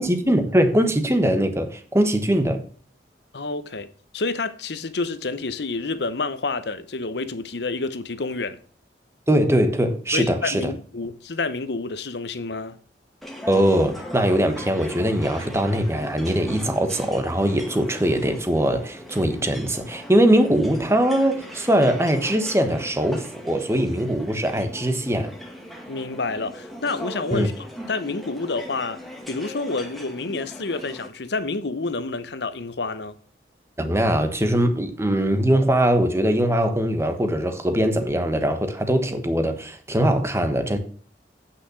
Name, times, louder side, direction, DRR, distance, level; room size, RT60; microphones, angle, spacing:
voice 1, 0.0-2.6 9.3-10.7 13.5-25.3 27.3-27.5 33.8-40.8, right 1 dB, 15° right, 1.2 m, -21 dB
voice 2, 3.3-8.6 10.1-12.8 25.9-29.0 29.3-33.1, left 3 dB, 70° left, 0.9 m, -29 dB
sound 1, 13.2-31.1, equal, ahead, 1.9 m, -39 dB
9.1 x 5.8 x 6.2 m
head